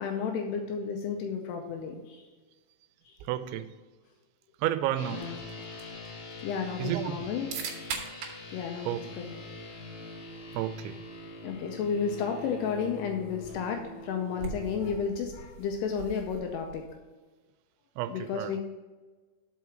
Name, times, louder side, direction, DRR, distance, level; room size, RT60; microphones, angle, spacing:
voice 1, 0.0-2.3 3.1-3.2 5.1-5.4 6.4-7.5 8.5-9.3 11.4-16.8 18.1-18.6, left 6 dB, 85° left, 3 dB, 2.5 m, -32 dB
voice 2, 3.3-3.6 4.6-5.3 6.8-7.2 8.9-9.0 10.5-11.0 18.0-18.5, right 12 dB, 90° right, 11 dB, 2.9 m, -31 dB
sound 1, 4.9-14.9, left 1 dB, 60° left, 2.5 m, -44 dB
sound 2, 5.1-17.0, right 6 dB, 70° right, 2.8 m, -45 dB
6.0 x 5.7 x 6.1 m, 1.3 s
omnidirectional pair, 5.2 m